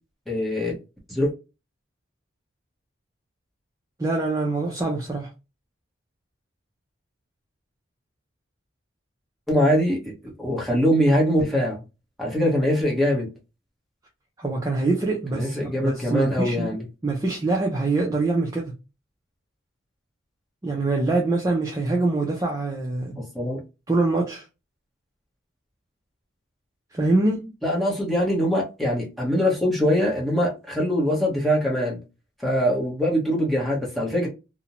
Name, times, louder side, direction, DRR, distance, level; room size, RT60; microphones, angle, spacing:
voice 1, 0.3-0.7 1.1-1.3 9.5-11.8 12.2-13.3 15.3-16.8 23.1-23.6 27.6-32.0 32.4-34.3, equal, ahead, 0.8 m, -23 dB
voice 2, 4.0-5.3 14.4-16.7 17.0-18.7 20.6-23.1 23.9-24.5 26.9-27.6, right 2 dB, 15° right, 0.3 m, -24 dB
2.5 x 2.1 x 2.8 m
head